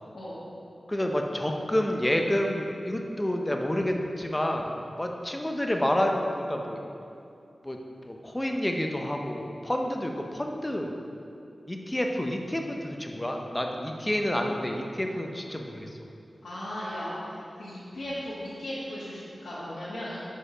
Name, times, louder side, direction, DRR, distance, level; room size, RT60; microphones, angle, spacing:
voice 1, 0.9-6.8 7.6-10.9 11.7-16.0, left 1 dB, 20° left, 2 dB, 0.7 m, -29 dB
voice 2, 16.4-20.2, left 1 dB, 85° left, -12 dB, 1.5 m, -37 dB
6.6 x 5.0 x 5.0 m, 2.6 s
wide cardioid pair, 60°, 0 cm